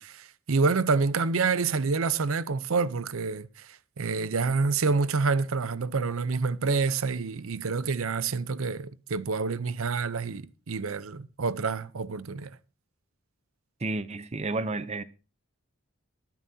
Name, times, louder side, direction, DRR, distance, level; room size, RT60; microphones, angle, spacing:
voice 1, 0.0-12.5, right 4 dB, 75° right, 0.7 m, -28 dB
voice 2, 13.8-15.0, right 2 dB, 30° right, 0.6 m, -31 dB
23.5 x 9.2 x 2.8 m
head